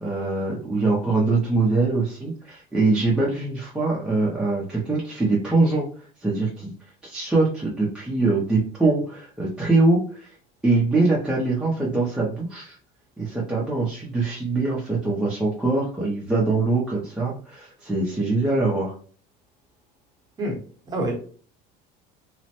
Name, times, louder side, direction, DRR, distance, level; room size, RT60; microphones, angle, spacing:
voice 1, 0.0-6.7 7.0-10.4 10.6-12.8 13.2-18.9, right 3 dB, 5° right, -6 dB, 0.4 m, -23 dB
voice 2, 20.4-21.2, right 1 dB, 20° right, 0 dB, 0.8 m, -28 dB
3.1 x 2.0 x 2.8 m, 0.43 s
cardioid pair, 160°, 20 cm